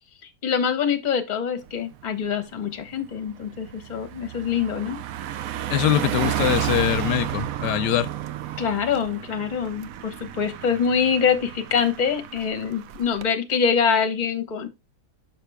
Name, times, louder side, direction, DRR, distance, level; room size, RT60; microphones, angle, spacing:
voice 1, 0.4-5.0 8.6-14.7, left 6 dB, 35° left, 0.9 m, -24 dB
Car passing by, 1.7-1.9 2.3-13.3, right 12 dB, 70° right, 0.9 m, -32 dB
voice 2, 5.7-8.1, left 12 dB, 80° left, 1.2 m, -23 dB
6.1 x 5.9 x 3.4 m
omnidirectional pair, 1.8 m